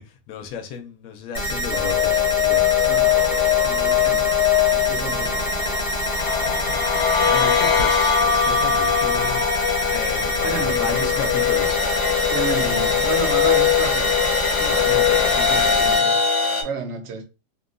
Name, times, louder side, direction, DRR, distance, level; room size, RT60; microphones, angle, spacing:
voice 1, 0.0-2.7 6.1-9.4 9.9-11.8 14.6-15.7, left 6 dB, 70° left, 0.9 m, -33 dB
sound 1, 1.3-16.0, equal, 40° left, 0.6 m, -26 dB
sound 2, 1.7-16.6, left 8 dB, 85° left, 1.3 m, -21 dB
voice 2, 2.8-3.3 3.6-4.3 4.7-5.8 10.4-11.2 12.3-14.1 15.5-16.2 16.6-17.2, right 5 dB, 90° right, 0.6 m, -32 dB
2.8 x 2.5 x 2.4 m
omnidirectional pair, 1.9 m